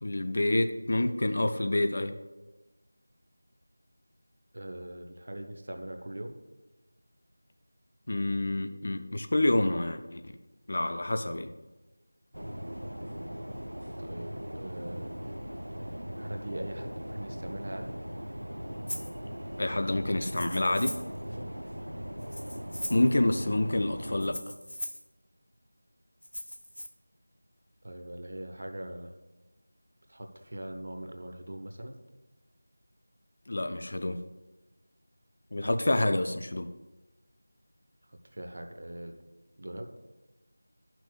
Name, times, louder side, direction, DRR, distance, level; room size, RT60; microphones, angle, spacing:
voice 1, 0.0-2.1 8.1-10.3 10.7-11.5 19.6-21.0 22.9-24.4 33.5-34.2 35.5-36.7, left 1 dB, 50° left, 7 dB, 0.5 m, -28 dB
voice 2, 4.5-6.3 14.0-15.1 16.2-17.9 21.3-21.5 27.8-29.1 30.1-32.0 38.0-39.2 39.6-39.9, right 1 dB, 55° right, 5 dB, 0.8 m, -41 dB
sound 1, 12.3-24.3, equal, 90° right, 0.4 m, -39 dB
Rattle (instrument), 18.9-19.1 20.2-21.2 22.2-23.1 24.2-25.1 26.2-26.9, equal, 80° left, 0.9 m, -39 dB
11.5 x 6.0 x 2.3 m, 1.1 s
figure-of-eight pair, 170°, 0 cm